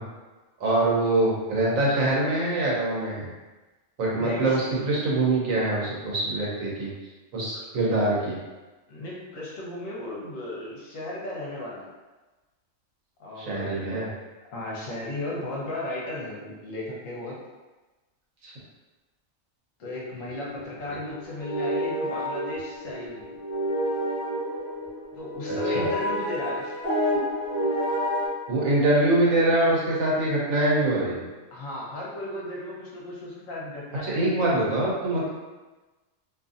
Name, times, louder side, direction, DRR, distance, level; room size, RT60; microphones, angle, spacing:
voice 1, 0.6-3.3 4.0-6.9 7.3-8.4 13.4-14.1 18.4-18.5 25.5-25.9 28.5-31.2 34.0-35.3, right 2 dB, 80° right, -5 dB, 1.2 m, -24 dB
voice 2, 4.2-4.7 8.9-11.9 13.2-14.1 14.5-17.3 19.8-23.3 25.2-26.7 31.5-34.8, left 1 dB, 75° left, -4 dB, 1.1 m, -35 dB
sound 1, 20.3-28.3, equal, 45° left, 0.6 m, -29 dB
2.8 x 2.5 x 2.5 m, 1.2 s
omnidirectional pair, 1.4 m